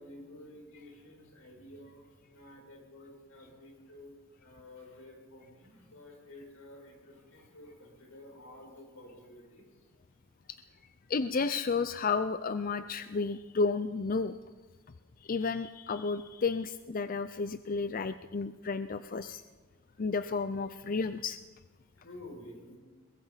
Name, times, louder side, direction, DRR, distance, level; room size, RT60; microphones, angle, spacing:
voice 1, 0.0-9.9 22.0-22.8, left 1 dB, 80° left, 1 dB, 6.6 m, -51 dB
voice 2, 11.1-14.4 15.2-19.4 20.0-21.4, left 4 dB, 40° left, 12 dB, 0.5 m, -32 dB
22.5 x 20.5 x 5.7 m, 1.4 s
head